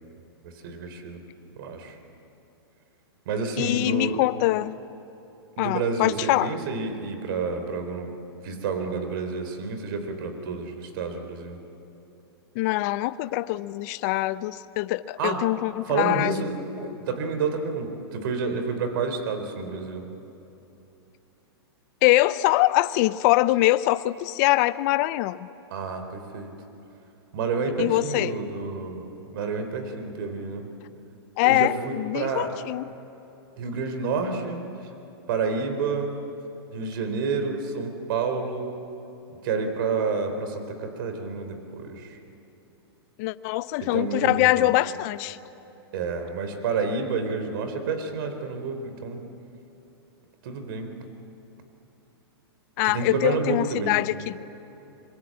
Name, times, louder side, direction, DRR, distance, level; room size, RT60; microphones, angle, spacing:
voice 1, 0.4-1.2 1.6-2.0 3.3-4.2 5.6-8.1 8.4-11.6 15.2-15.4 15.9-20.1 25.7-26.5 27.3-30.7 31.4-32.5 33.6-34.6 35.3-36.2 36.7-38.8 39.4-42.2 43.9-44.7 45.9-49.2 50.4-50.9 52.8-54.0, right 4 dB, 55° right, 7 dB, 3.8 m, -29 dB
voice 2, 3.6-4.7 5.6-6.5 12.6-16.5 22.0-25.5 27.8-28.4 31.4-32.8 43.2-45.4 52.8-54.4, left 17 dB, 40° left, 15 dB, 0.6 m, -23 dB
25.0 x 22.0 x 8.5 m, 3.0 s
hypercardioid pair, 135°, 14 cm